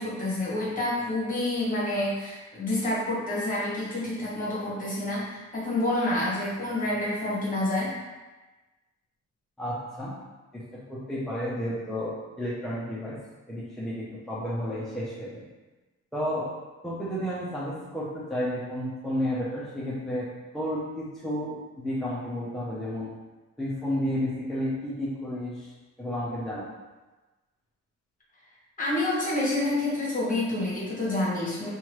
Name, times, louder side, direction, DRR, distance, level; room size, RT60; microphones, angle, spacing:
voice 1, 0.0-7.9 28.8-31.7, left 1 dB, 25° left, -6 dB, 1.2 m, -28 dB
voice 2, 9.6-10.1 10.5-13.1 13.5-15.4 16.1-16.5 16.8-20.3 20.5-23.1 23.6-25.7 26.0-26.7, equal, ahead, -9 dB, 0.7 m, -32 dB
2.8 x 2.4 x 3.1 m, 1.2 s
cardioid pair, 90°, 30 cm